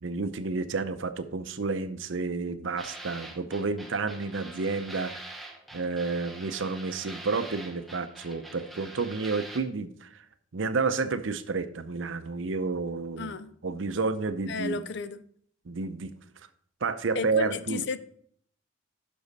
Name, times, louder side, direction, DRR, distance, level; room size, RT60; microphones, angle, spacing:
voice 1, 0.0-5.4 5.7-10.1 10.5-13.4 13.6-14.8 15.7-16.1 16.8-17.8, right 4 dB, 70° right, 0.6 m, -30 dB
sound 1, 2.8-9.6, right 2 dB, ahead, 1.0 m, -44 dB
voice 2, 13.2-13.5 14.5-15.2 17.1-18.0, left 4 dB, 60° left, 0.5 m, -33 dB
10.0 x 6.2 x 4.1 m
head